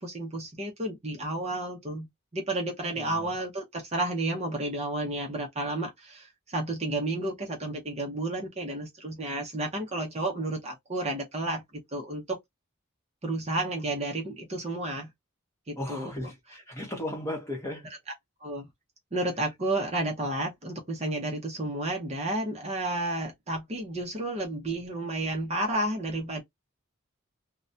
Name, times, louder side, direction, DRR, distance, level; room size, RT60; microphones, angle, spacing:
voice 1, 0.0-2.1 2.3-11.6 11.9-12.4 13.2-15.1 15.7-16.1 18.4-18.7 19.1-26.4, right 2 dB, 30° right, 0.5 m, -31 dB
voice 2, 3.0-3.3 15.8-17.9, left 1 dB, 15° left, 0.8 m, -36 dB
2.3 x 2.1 x 2.6 m
head